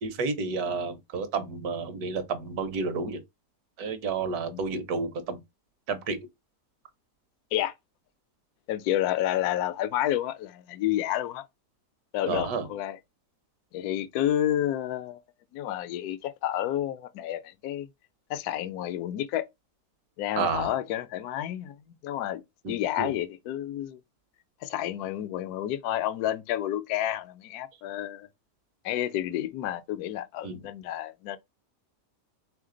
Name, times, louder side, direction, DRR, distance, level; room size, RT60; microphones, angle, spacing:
voice 1, 0.0-3.2 3.8-5.4 5.9-6.2 12.3-12.7 20.4-20.7 22.6-23.1 30.4-30.6, right 4 dB, 70° right, 1.3 m, -30 dB
voice 2, 8.7-11.4 12.1-13.0 13.7-15.2 15.5-17.9 18.3-19.5 20.2-22.4 22.7-24.0 24.6-28.3 28.8-31.4, left 12 dB, 75° left, 1.0 m, -30 dB
3.5 x 3.3 x 3.7 m
omnidirectional pair, 1.8 m